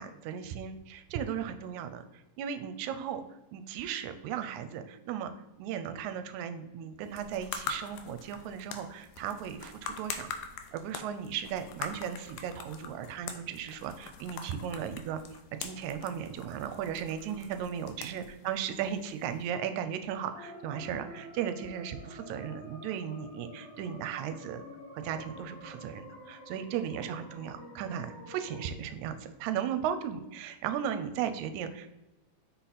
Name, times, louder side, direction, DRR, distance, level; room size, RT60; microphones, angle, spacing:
voice 1, 0.0-2.0 2.4-3.2 3.5-5.3 5.6-10.4 10.7-15.2 15.6-24.6 24.9-31.9, right 8 dB, 85° right, 10 dB, 2.0 m, -36 dB
sound 1, 7.0-19.5, left 6 dB, 75° left, 1.8 m, -44 dB
sound 2, 20.1-28.7, left 1 dB, 60° left, 1.1 m, -49 dB
5.8 x 4.2 x 4.0 m, 1.0 s
omnidirectional pair, 3.3 m